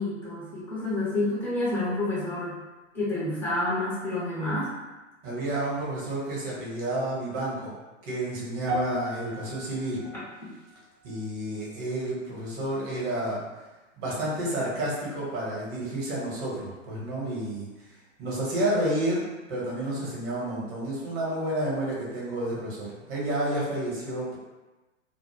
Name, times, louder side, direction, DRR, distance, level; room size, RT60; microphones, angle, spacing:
voice 1, 0.0-2.6 2.9-4.7, left 2 dB, 5° left, -10 dB, 0.5 m, -29 dB
voice 2, 5.2-7.8 8.1-10.0 11.0-13.4 14.0-17.7 18.2-19.2 19.5-24.4, right 1 dB, 25° right, -6 dB, 0.8 m, -30 dB
sound 1, 8.7-13.1 13.3-13.7 14.4-14.5, equal, 65° right, 0.7 m, -39 dB
2.0 x 2.0 x 3.1 m, 1.1 s
hypercardioid pair, 120°, 39 cm